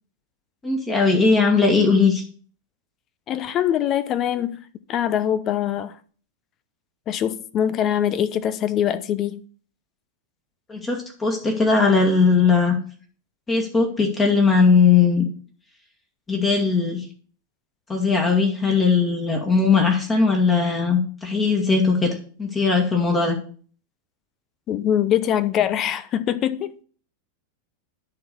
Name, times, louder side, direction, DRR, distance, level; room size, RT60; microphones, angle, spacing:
voice 1, 0.6-2.2 10.7-12.8 13.5-15.3 16.3-17.0 17.9-23.4, left 4 dB, 15° left, 1.9 m, -19 dB
voice 2, 3.3-4.6 4.9-6.0 7.1-9.4 24.7-26.7, left 10 dB, 30° left, 0.7 m, -23 dB
10.5 x 4.0 x 6.6 m
figure-of-eight pair, 90°, 0 cm